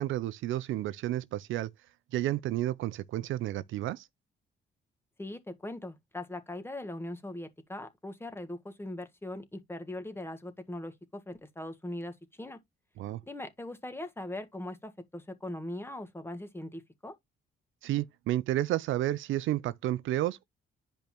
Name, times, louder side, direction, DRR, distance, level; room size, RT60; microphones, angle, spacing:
voice 1, 0.0-1.7 2.1-4.1 13.0-13.2 17.8-20.4, right 14 dB, 80° right, 0.5 m, -31 dB
voice 2, 5.2-12.6 13.3-17.1, left 1 dB, 10° left, 1.6 m, -40 dB
10.0 x 5.2 x 2.9 m
cardioid pair, 90°, 20 cm